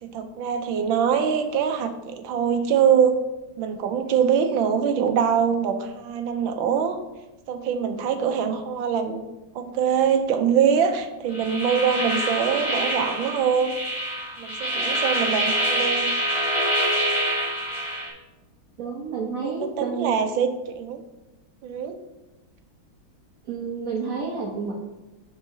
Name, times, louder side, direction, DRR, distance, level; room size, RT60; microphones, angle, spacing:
voice 1, 0.0-3.1 3.6-7.0 7.5-9.2 9.5-13.8 14.4-16.1 19.4-21.0 21.6-22.0, right 7 dB, 80° right, 7 dB, 1.4 m, -23 dB
sound 1, 11.3-18.1, right 1 dB, 55° left, 2.2 m, -26 dB
voice 2, 18.8-20.2 23.5-24.7, right 5 dB, 50° right, -2 dB, 1.1 m, -30 dB
11.5 x 4.9 x 2.7 m, 1.0 s
omnidirectional pair, 2.2 m